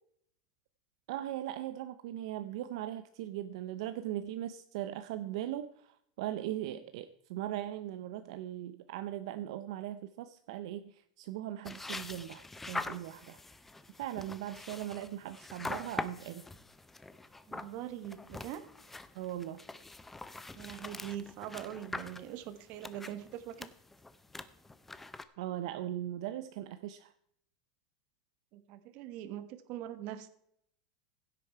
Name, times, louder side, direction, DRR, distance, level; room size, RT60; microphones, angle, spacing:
voice 1, 1.1-13.4 14.0-16.4 19.1-19.6 25.4-27.1, right 12 dB, 65° right, 11 dB, 0.6 m, -39 dB
sound 1, 11.7-25.2, left 2 dB, 5° left, 0.5 m, -44 dB
voice 2, 17.5-18.7 20.5-23.7 28.5-30.3, right 11 dB, 45° right, 12 dB, 1.2 m, -42 dB
16.0 x 8.4 x 4.6 m, 0.70 s
supercardioid pair, 155°, 3 cm